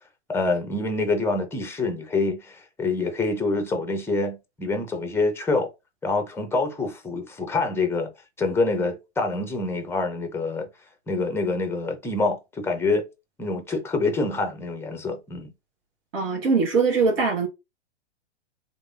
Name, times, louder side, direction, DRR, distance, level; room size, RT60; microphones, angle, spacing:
voice 1, 0.3-5.7 6.0-8.1 8.4-10.7 11.1-13.0 13.4-15.5, left 3 dB, 5° left, 1.0 m, -26 dB
voice 2, 16.1-17.5, right 4 dB, 55° right, 1.9 m, -21 dB
3.5 x 3.3 x 2.7 m
figure-of-eight pair, 110°, 35 cm